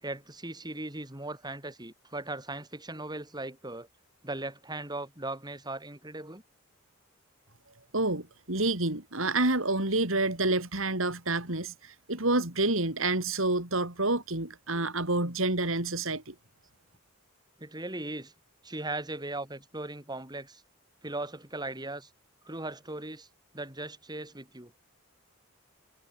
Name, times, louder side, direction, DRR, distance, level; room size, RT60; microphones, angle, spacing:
voice 1, 0.0-3.9 4.2-6.4 14.7-14.9 17.6-18.3 18.6-20.6 21.0-22.1 22.4-23.3 23.5-24.7, right 2 dB, 20° right, 6.3 m, -38 dB
voice 2, 7.9-16.3, right 2 dB, 65° right, 5.2 m, -28 dB
head